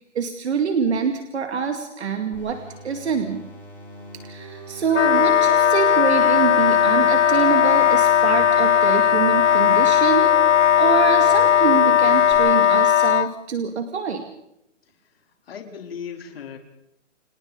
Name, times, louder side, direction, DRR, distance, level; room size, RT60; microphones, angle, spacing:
voice 1, 0.1-3.5 4.2-14.3, right 6 dB, 60° right, 5 dB, 2.5 m, -25 dB
sound 1, 2.3-12.3, left 1 dB, 5° left, 5.2 m, -42 dB
Wind instrument woodwind instrument, 3.8-8.2 8.5-13.0, right 7 dB, 20° right, 0.9 m, -37 dB
Wind instrument woodwind instrument 2, 4.9-13.3, left 9 dB, 70° left, 1.2 m, -17 dB
voice 2, 15.4-16.6, left 7 dB, 50° left, 4 dB, 3.6 m, -36 dB
30.0 x 26.0 x 4.1 m, 0.80 s
hypercardioid pair, 175°, 38 cm